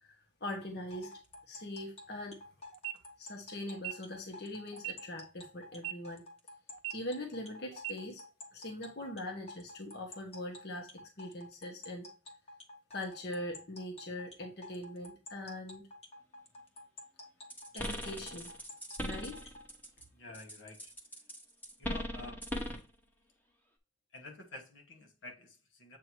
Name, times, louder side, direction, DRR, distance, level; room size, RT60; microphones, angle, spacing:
voice 1, 0.0-1.1 1.5-2.4 3.2-6.2 6.9-8.2 8.5-12.1 12.9-15.9 17.7-18.5 19.0-19.4, left 1 dB, 55° left, 1.1 m, -42 dB
sound 1, 0.9-19.6, left 2 dB, 30° left, 1.1 m, -50 dB
sound 2, 2.7-2.9 3.7-3.9 4.7-4.9 5.7-5.9 6.7-6.9 7.7-7.9, right 16 dB, 75° right, 0.5 m, -38 dB
sound 3, 17.5-20.0 20.3-22.9, equal, 10° left, 1.0 m, -40 dB
voice 2, 20.1-20.9 21.8-22.4 24.1-26.0, left 2 dB, 75° left, 1.3 m, -49 dB
7.7 x 2.8 x 4.5 m
head